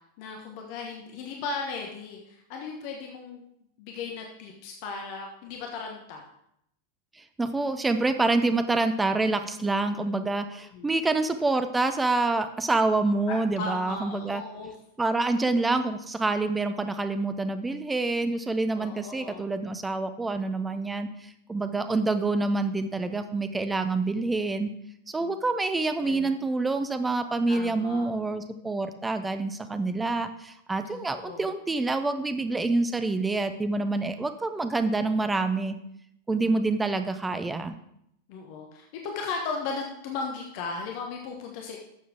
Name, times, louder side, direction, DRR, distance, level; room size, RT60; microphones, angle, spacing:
voice 1, 0.2-3.4 3.8-6.2 10.5-10.9 13.3-14.7 18.7-19.5 21.7-21.9 23.9-24.0 25.2-25.3 26.0-26.3 27.5-28.1 30.8-31.4 36.4-36.5 38.3-41.8, left 4 dB, 45° left, 1 dB, 1.3 m, -36 dB
voice 2, 7.4-14.4 15.0-21.1 21.5-24.7 25.1-35.8 36.3-37.7, right 3 dB, 10° right, 9 dB, 0.7 m, -27 dB
12.0 x 7.4 x 3.5 m, 0.75 s
figure-of-eight pair, 90°, 0 cm